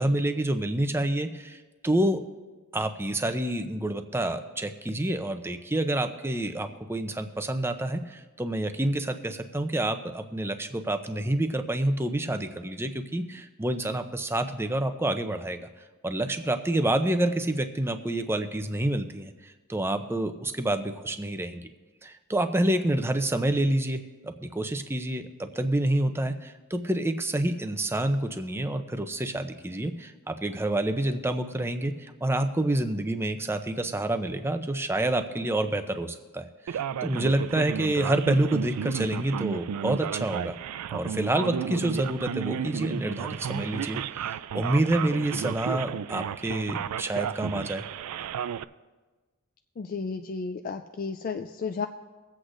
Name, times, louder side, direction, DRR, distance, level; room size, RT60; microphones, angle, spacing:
voice 1, 0.0-1.6 1.8-2.2 2.7-15.7 16.0-21.6 22.0-40.6 40.9-47.8, right 1 dB, 10° right, 7 dB, 0.5 m, -28 dB
Male speech man speaking, 36.7-48.6, right 8 dB, 90° right, 0.3 m, -33 dB
voice 2, 49.8-51.9, left 5 dB, 40° left, 5 dB, 0.3 m, -33 dB
23.5 x 8.0 x 2.5 m, 1.3 s
head